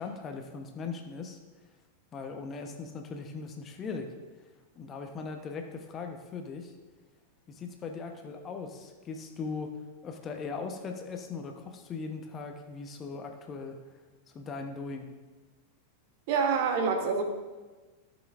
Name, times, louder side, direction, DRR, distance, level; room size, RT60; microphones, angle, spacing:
voice 1, 0.0-1.4 2.1-4.1 4.8-6.7 7.5-9.8 10.0-13.8 14.3-15.1, left 4 dB, 25° left, 4 dB, 1.0 m, -39 dB
voice 2, 16.3-17.2, right 5 dB, 50° right, 4 dB, 1.3 m, -26 dB
14.5 x 7.1 x 2.6 m, 1.3 s
figure-of-eight pair, 90°, 0 cm